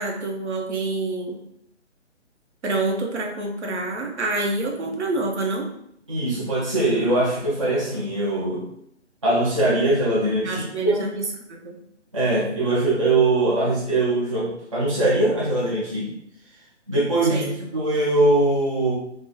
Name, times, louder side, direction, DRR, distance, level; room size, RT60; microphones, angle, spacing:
voice 1, 0.0-1.4 2.6-5.7 10.4-11.8 17.3-17.5, right 2 dB, 65° right, 1 dB, 0.9 m, -27 dB
voice 2, 6.1-8.6 9.2-11.1 12.1-16.1 16.9-19.0, right 2 dB, 30° right, -7 dB, 0.5 m, -22 dB
3.0 x 2.1 x 3.6 m, 0.73 s
hypercardioid pair, 165°, 36 cm